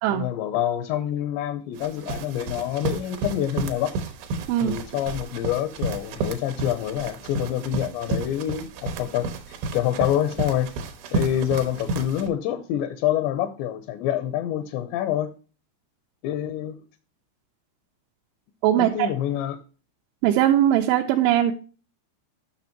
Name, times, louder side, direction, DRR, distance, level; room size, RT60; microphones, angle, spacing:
voice 1, 0.1-3.9 4.6-10.7 11.1-15.3 16.2-16.8 18.8-19.6, left 11 dB, 85° left, 2.8 m, -26 dB
sound 1, 1.8-12.3, right 3 dB, 70° right, 2.5 m, -32 dB
voice 2, 18.6-19.1 20.2-21.5, right 12 dB, 85° right, 3.1 m, -20 dB
10.5 x 6.1 x 2.9 m
omnidirectional pair, 5.3 m